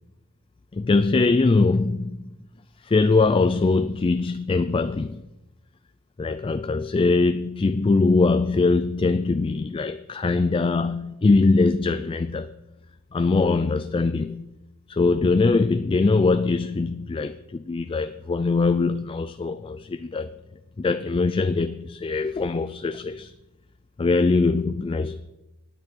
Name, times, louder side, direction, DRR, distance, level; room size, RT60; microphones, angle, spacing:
voice 1, 0.7-2.3 2.8-5.2 6.2-12.5 13.1-14.5 14.9-20.3 20.8-23.3 24.0-25.2, left 3 dB, 25° left, 0.3 m, -22 dB
17.5 x 9.1 x 4.4 m
head